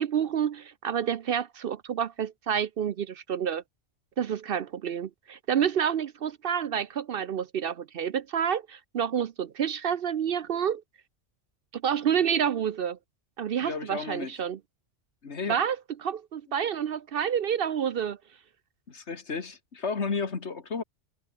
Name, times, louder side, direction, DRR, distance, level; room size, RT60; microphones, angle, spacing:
voice 1, 0.0-3.6 4.2-10.8 11.7-13.0 13.4-14.6 15.5-18.2, right 8 dB, 60° right, 0.8 m, -29 dB
voice 2, 13.6-14.4 15.2-15.6 18.9-20.8, left 4 dB, 70° left, 2.2 m, -33 dB
omnidirectional pair, 1.2 m